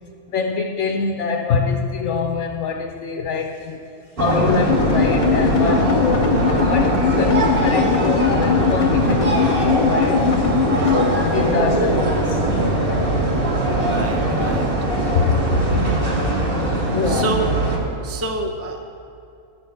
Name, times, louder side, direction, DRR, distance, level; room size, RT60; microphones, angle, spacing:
voice 1, 0.3-3.9 4.2-10.3 10.8-12.4 15.1-16.0 16.9-17.4, left 5 dB, 60° left, 0.9 m, -24 dB
sound 1, 4.2-17.8, right 1 dB, 40° right, 1.8 m, -20 dB
sound 2, 4.7-11.0, left 7 dB, 90° left, 0.4 m, -21 dB
voice 2, 13.8-14.7 17.1-17.5 18.0-18.8, right 2 dB, 15° right, 0.6 m, -27 dB
12.0 x 7.3 x 7.9 m
omnidirectional pair, 1.6 m